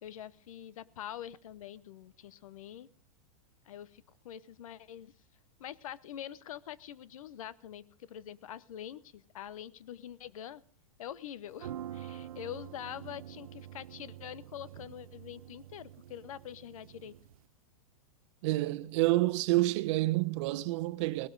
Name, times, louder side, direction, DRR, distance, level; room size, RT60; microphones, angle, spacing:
voice 1, 0.0-2.9 3.6-5.1 5.6-10.6 11.0-17.1, left 10 dB, 75° left, 0.8 m, -45 dB
sound 1, 11.5-17.4, right 11 dB, 85° right, 0.5 m, -47 dB
voice 2, 18.4-21.3, right 18 dB, 55° right, 0.9 m, -28 dB
18.5 x 12.5 x 3.8 m
hypercardioid pair, 120°, 18 cm